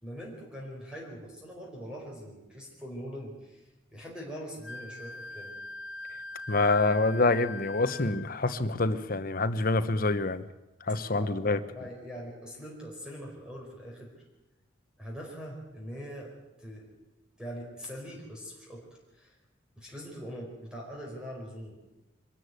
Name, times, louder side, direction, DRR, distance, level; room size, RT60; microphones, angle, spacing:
voice 1, 0.0-3.6 3.9-5.5 11.1-14.1 15.0-16.3 16.6-17.0 17.4-18.8 19.1-19.3 19.8-21.8, equal, 5° right, -2 dB, 4.7 m, -42 dB
Wind instrument woodwind instrument, 4.6-8.4, left 2 dB, 70° left, 1.4 m, -42 dB
voice 2, 6.5-10.4 10.9-11.6, left 2 dB, 45° left, 11 dB, 1.1 m, -26 dB
24.0 x 13.5 x 9.5 m, 1.0 s
head